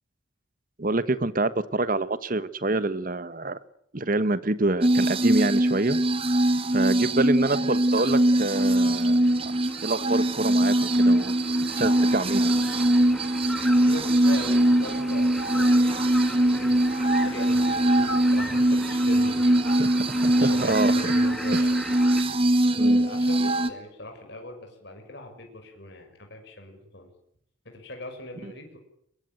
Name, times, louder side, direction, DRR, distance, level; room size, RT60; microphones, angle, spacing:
voice 1, 0.8-3.6 3.9-6.0 6.7-9.3 9.8-11.3 11.8-12.5 19.7-21.1 21.5-21.6 22.8-23.0 28.4-28.5, right 2 dB, 40° right, 15 dB, 1.1 m, -27 dB
sound 1, 4.8-23.7, right 1 dB, 25° right, 1.6 m, -22 dB
sound 2, 7.5-22.2, equal, ahead, 2.5 m, -39 dB
voice 2, 13.8-15.9 16.2-19.9 20.2-21.7 22.7-27.1 27.6-28.8, left 1 dB, 55° left, 3 dB, 6.3 m, -40 dB
23.0 x 21.5 x 9.1 m, 0.73 s
head